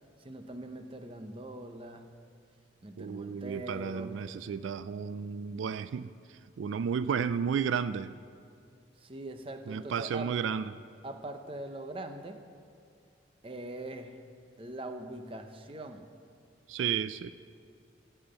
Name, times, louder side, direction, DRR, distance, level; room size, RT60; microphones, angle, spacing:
voice 1, 0.2-2.1 2.8-4.2 9.0-10.3 11.0-12.4 13.4-14.2 14.6-16.0, right 1 dB, 30° right, 7 dB, 0.7 m, -42 dB
voice 2, 3.0-8.1 9.7-10.7 16.7-17.3, right 7 dB, 85° right, 14 dB, 0.3 m, -33 dB
16.5 x 5.7 x 7.8 m, 2.3 s
head